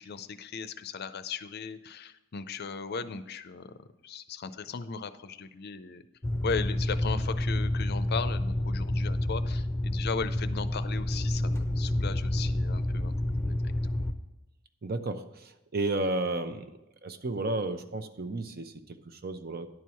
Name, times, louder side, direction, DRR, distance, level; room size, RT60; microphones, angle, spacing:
voice 1, 0.0-3.7 4.0-6.0 6.4-13.1 13.4-13.5, left 5 dB, 50° left, 12 dB, 0.5 m, -37 dB
sound 1, 6.2-14.1, left 1 dB, 15° left, 0.7 m, -29 dB
voice 2, 14.8-16.7 17.0-19.7, right 2 dB, 50° right, 9 dB, 0.7 m, -32 dB
11.0 x 4.6 x 7.0 m, 0.92 s
head